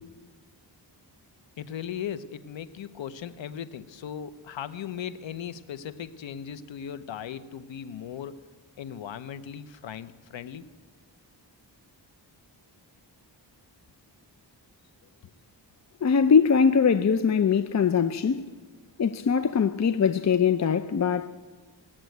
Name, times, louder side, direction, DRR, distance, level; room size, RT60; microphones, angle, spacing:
voice 1, 1.6-8.4 8.8-10.6, left 8 dB, 90° left, 0.7 m, -38 dB
voice 2, 16.0-18.4 19.0-21.3, left 6 dB, 40° left, 0.6 m, -22 dB
18.0 x 7.6 x 9.2 m
wide cardioid pair, 80°, 44 cm